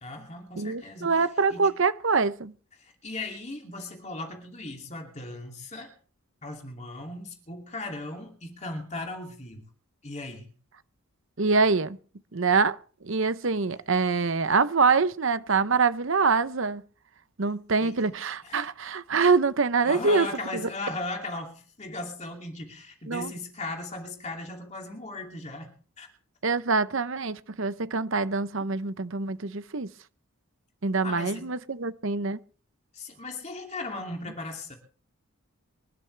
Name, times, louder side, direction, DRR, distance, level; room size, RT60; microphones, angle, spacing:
voice 1, 0.0-1.7 2.8-5.9 6.4-9.7 10.0-10.5 17.8-18.0 18.4-18.7 19.8-26.1 31.0-31.6 32.9-34.7, left 2 dB, 30° left, 2.7 m, -37 dB
voice 2, 0.6-2.5 11.4-12.0 12.3-12.8 13.0-16.8 17.4-20.3 20.5-20.7 23.1-23.3 26.4-29.9 30.8-32.4, right 4 dB, 60° right, 0.8 m, -25 dB
25.5 x 12.5 x 3.4 m
head